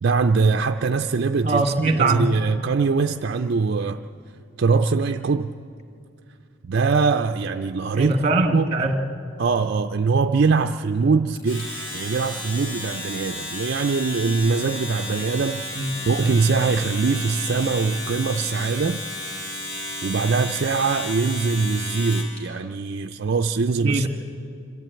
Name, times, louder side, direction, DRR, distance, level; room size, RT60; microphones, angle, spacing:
voice 1, 0.0-1.6 2.0-4.0 4.6-5.5 6.6-8.1 8.5-8.7 9.4-19.0 20.0-24.1, right 4 dB, 55° right, 6 dB, 0.5 m, -22 dB
voice 2, 1.4-2.3 8.0-9.0 15.8-15.9 23.8-24.1, right 2 dB, 30° right, 7 dB, 1.4 m, -22 dB
Domestic sounds home sounds, 11.4-22.4, left 1 dB, 75° left, 4.9 m, -33 dB
26.5 x 14.0 x 9.0 m, 2.4 s
head